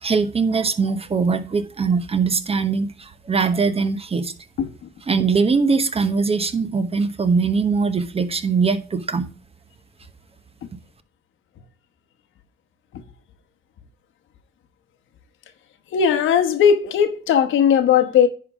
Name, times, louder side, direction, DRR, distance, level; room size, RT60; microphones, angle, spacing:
voice 1, 0.0-4.3 5.1-9.3, right 5 dB, 30° right, 1.0 m, -21 dB
voice 2, 15.9-18.3, left 8 dB, 80° left, 1.2 m, -17 dB
10.5 x 3.7 x 4.8 m
cardioid pair, 90°, 20 cm